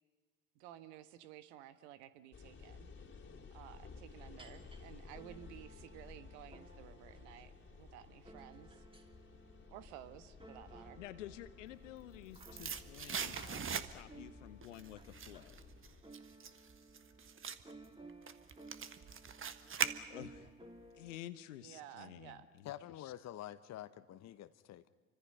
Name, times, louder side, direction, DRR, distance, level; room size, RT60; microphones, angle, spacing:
voice 1, 0.5-2.9 3.5-8.8 9.7-11.0 21.6-22.5, right 12 dB, 70° right, 12 dB, 1.5 m, -54 dB
sound 1, 2.3-16.0, left 4 dB, 30° left, 3.1 m, -56 dB
sound 2, 4.4-4.8 5.1-21.2, right 2 dB, 15° right, 3.0 m, -58 dB
voice 2, 11.0-15.6 20.1-20.5 20.9-22.7 23.0-23.1, left 13 dB, 75° left, 13 dB, 1.3 m, -51 dB
sound 3, 11.9-14.3 14.6-20.5 20.8-20.9, right 7 dB, 35° right, 1.5 m, -42 dB
voice 3, 22.6-24.9, left 12 dB, 45° left, 11 dB, 1.1 m, -48 dB
29.5 x 25.0 x 5.6 m, 1.4 s
hypercardioid pair, 60°, 37 cm